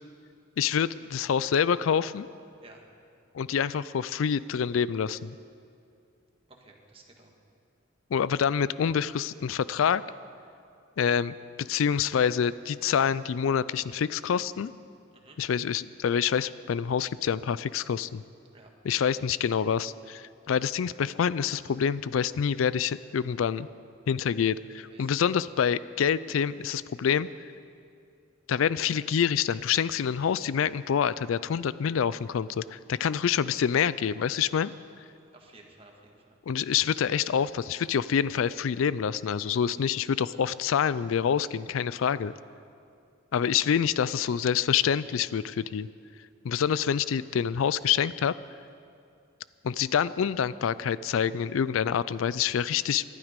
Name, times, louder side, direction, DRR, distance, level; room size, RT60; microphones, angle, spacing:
voice 1, 0.6-2.3 3.3-5.4 8.1-10.0 11.0-14.7 15.4-18.2 18.8-23.7 24.1-27.3 28.5-34.7 36.5-42.3 43.3-45.9 46.4-48.3 49.6-53.0, left 7 dB, 80° left, 18 dB, 0.4 m, -27 dB
voice 2, 6.5-7.3 15.1-15.4 18.5-18.7 24.9-25.2 35.3-36.4, right 2 dB, 30° right, 1 dB, 1.8 m, -54 dB
20.5 x 12.0 x 5.2 m, 2.4 s
head